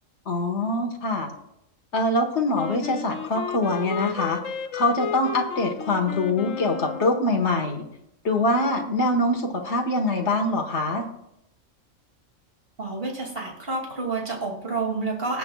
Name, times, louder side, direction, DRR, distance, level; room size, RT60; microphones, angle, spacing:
voice 1, 0.3-1.3 1.9-4.4 4.7-7.8 8.2-11.1, left 2 dB, 55° left, 2 dB, 1.9 m, -24 dB
Wind instrument woodwind instrument, 2.5-7.3, left 7 dB, 75° left, 1.1 m, -33 dB
voice 2, 12.8-15.4, right 3 dB, 45° right, 0 dB, 2.8 m, -29 dB
19.5 x 8.3 x 2.4 m, 0.79 s
omnidirectional pair, 1.4 m